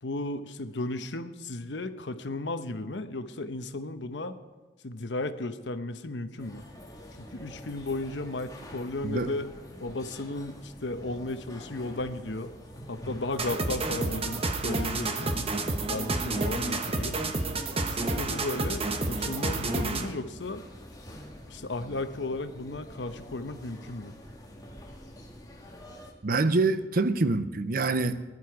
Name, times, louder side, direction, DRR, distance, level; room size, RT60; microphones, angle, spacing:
voice 1, 0.0-4.4 4.8-6.6 7.2-9.5 9.8-12.5 12.9-15.5 15.8-17.2 17.9-20.6 21.5-24.1, left 2 dB, 80° left, 9 dB, 0.9 m, -35 dB
sound 1, 6.4-26.1, equal, 20° left, 1.9 m, -46 dB
sound 2, 13.4-20.2, right 2 dB, 35° right, 1.1 m, -30 dB
voice 2, 26.2-28.2, right 3 dB, 55° right, 12 dB, 0.7 m, -26 dB
20.0 x 11.0 x 4.8 m, 1.2 s
head